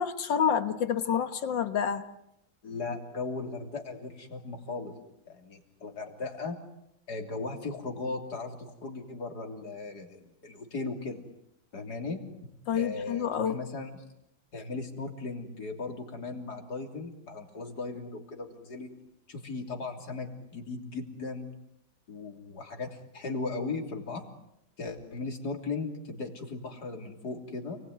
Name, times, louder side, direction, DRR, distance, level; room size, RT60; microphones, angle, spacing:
voice 1, 0.0-2.0 12.7-13.6, left 7 dB, 70° left, 10 dB, 2.0 m, -28 dB
voice 2, 2.6-5.0 5.3-6.6 7.1-11.2 11.7-12.2 12.7-14.0 14.5-18.9 19.3-21.5 22.1-24.3 24.8-27.8, left 3 dB, 55° left, 3 dB, 3.7 m, -37 dB
29.0 x 20.0 x 9.4 m, 0.81 s
omnidirectional pair, 2.1 m